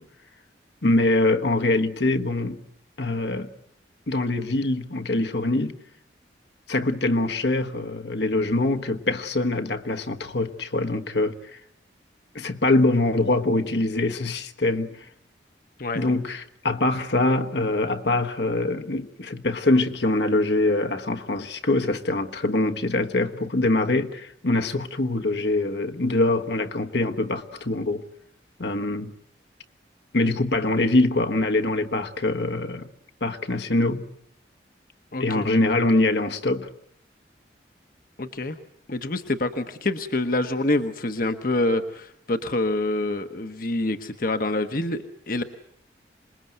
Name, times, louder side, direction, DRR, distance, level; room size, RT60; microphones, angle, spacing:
voice 1, 0.8-2.6 3.0-3.5 4.1-5.8 6.7-11.6 12.3-15.1 15.9-28.0 28.6-29.1 30.1-32.9 33.2-34.1 35.2-36.7, left 2 dB, 65° left, 1.3 m, -24 dB
voice 2, 35.1-35.5 38.2-38.6 38.9-45.4, left 2 dB, 50° left, 1.1 m, -26 dB
26.5 x 21.0 x 7.9 m
head